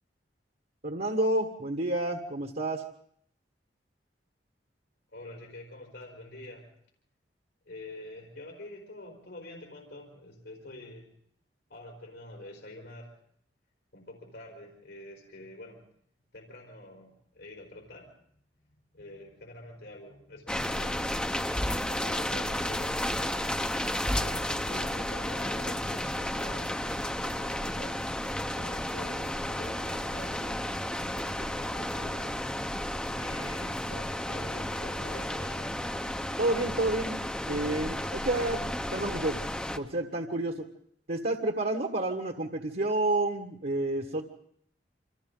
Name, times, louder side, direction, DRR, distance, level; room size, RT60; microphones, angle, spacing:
voice 1, 0.8-2.8 36.4-37.2 37.5-39.4 39.8-40.7 41.1-44.2, right 2 dB, 55° right, 3 dB, 1.6 m, -29 dB
voice 2, 5.1-6.7 7.6-11.1 11.7-13.2 13.9-15.8 16.3-18.2 18.9-23.5 24.1-28.0 28.4-30.6 31.1-32.3 33.2-35.8, left 1 dB, 85° left, -1 dB, 4.7 m, -47 dB
sound 1, 20.5-39.8, left 1 dB, 5° left, 0.8 m, -32 dB
28.5 x 25.5 x 3.9 m, 0.67 s
head